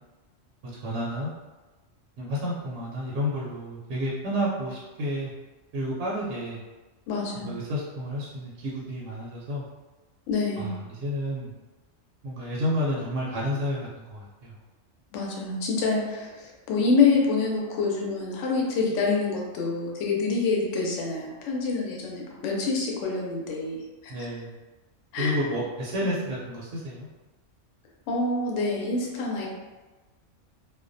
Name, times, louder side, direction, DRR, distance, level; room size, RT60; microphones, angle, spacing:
voice 1, 0.8-1.3 2.2-5.3 5.7-6.6 7.3-9.6 10.5-11.5 12.2-14.5 24.1-24.5 25.2-27.1, equal, 70° right, -6 dB, 0.8 m, -30 dB
voice 2, 7.1-7.5 10.3-10.8 15.1-23.8 24.2-24.3 25.1-25.4 28.1-29.5, left 4 dB, 75° left, -2 dB, 0.9 m, -26 dB
2.3 x 2.1 x 2.5 m, 1.2 s
omnidirectional pair, 1.3 m